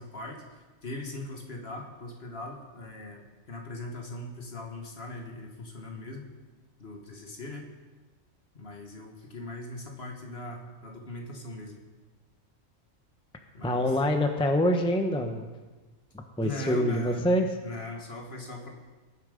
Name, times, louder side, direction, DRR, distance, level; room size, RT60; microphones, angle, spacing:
voice 1, 0.0-6.3 6.8-7.7 8.5-11.8 13.5-13.9 16.4-17.2 17.6-18.7, left 2 dB, 50° left, 2 dB, 1.8 m, -40 dB
voice 2, 13.6-15.5 16.4-17.5, left 1 dB, 5° left, 5 dB, 0.7 m, -25 dB
18.5 x 7.5 x 5.1 m, 1.3 s
omnidirectional pair, 1.4 m